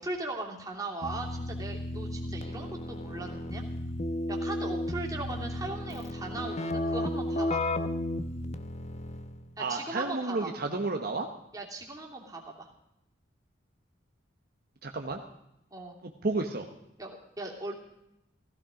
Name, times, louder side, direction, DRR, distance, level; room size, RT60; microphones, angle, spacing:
voice 1, 0.0-3.6 4.3-7.6 9.6-10.5 11.5-12.7 15.7-16.0 17.0-17.8, right 2 dB, 20° right, -1 dB, 3.0 m, -38 dB
Keyboard (musical), 1.0-9.4, left 1 dB, 40° left, 0.9 m, -33 dB
voice 2, 9.6-11.3 14.8-15.2 16.2-16.7, right 3 dB, 55° right, 3 dB, 1.2 m, -31 dB
16.0 x 15.5 x 5.1 m, 0.85 s
head